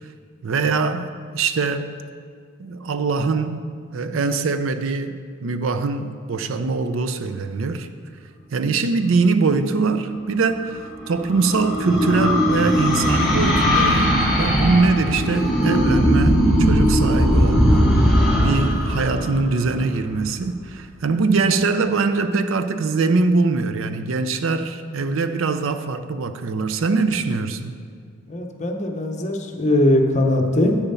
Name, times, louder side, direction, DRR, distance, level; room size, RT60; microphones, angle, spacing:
voice 1, 0.4-1.1 1.3-1.9 2.6-3.6 3.9-5.2 5.4-7.9 8.5-17.9 18.4-27.7, right 4 dB, 75° right, 0.5 m, -22 dB
sound 1, 10.6-20.2, equal, ahead, 1.6 m, -19 dB
voice 2, 28.3-30.8, left 1 dB, 35° left, 0.8 m, -20 dB
8.4 x 6.9 x 5.6 m
head